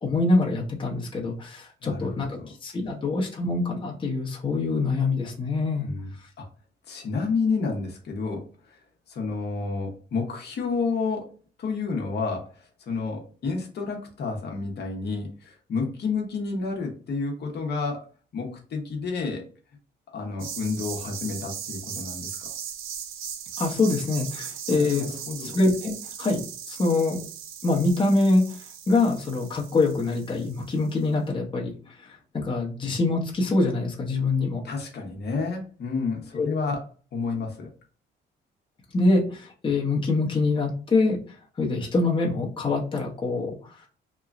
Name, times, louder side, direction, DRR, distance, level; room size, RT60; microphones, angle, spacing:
voice 1, 0.0-5.9 23.6-27.2 27.6-28.6 28.9-34.6 36.4-36.5 38.9-41.2 41.6-43.6, left 3 dB, 25° left, -3 dB, 0.8 m, -25 dB
voice 2, 6.9-8.8 9.1-11.3 11.6-18.0 18.3-19.4 20.1-22.5 24.7-25.5 34.6-36.8 37.1-37.7, left 4 dB, 55° left, 1 dB, 0.9 m, -30 dB
sound 1, 20.4-30.9, right 8 dB, 85° right, 0.5 m, -38 dB
3.0 x 2.2 x 2.4 m, 0.40 s
cardioid pair, 90°, 20 cm